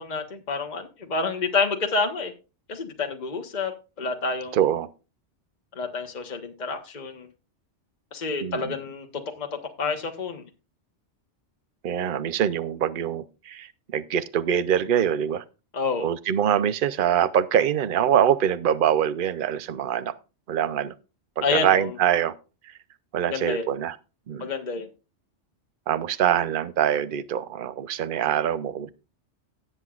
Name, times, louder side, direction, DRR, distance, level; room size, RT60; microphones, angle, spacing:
voice 1, 0.0-2.3 2.7-3.7 4.0-4.6 5.7-7.3 8.1-10.4 15.7-16.1 21.4-21.9 23.3-23.6 24.4-24.9, left 4 dB, 40° left, 1.3 m, -28 dB
voice 2, 4.5-4.9 8.4-8.7 11.8-15.4 16.0-20.1 20.5-20.9 21.4-22.3 23.1-24.0 24.3-24.5 25.9-28.9, right 9 dB, 55° right, 0.8 m, -24 dB
18.0 x 7.6 x 2.4 m
omnidirectional pair, 1.2 m